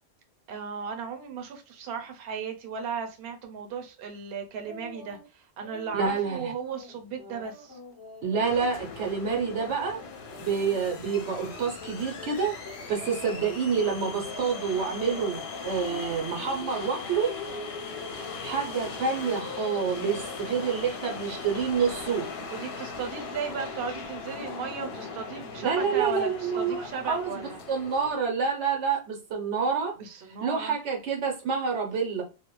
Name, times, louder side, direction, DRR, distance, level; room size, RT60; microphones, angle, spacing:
voice 1, 0.5-5.2 5.6-7.8 22.5-27.6 30.0-30.7, right 6 dB, 65° right, 0.8 m, -36 dB
sound 1, 4.6-5.3 5.6-13.6 13.9-15.3 15.5-16.0 16.3-19.7 20.0-20.6 21.0-21.2, left 2 dB, 25° left, 0.7 m, -47 dB
voice 2, 5.9-6.5 8.2-10.0 10.4-12.5 12.9-17.4 18.4-22.3 25.6-27.4 27.7-29.9 30.3-32.2, right 5 dB, 90° right, 1.1 m, -28 dB
sound 2, 8.3-28.2, left 4 dB, 60° left, 0.7 m, -39 dB
2.5 x 2.1 x 3.0 m
omnidirectional pair, 1.1 m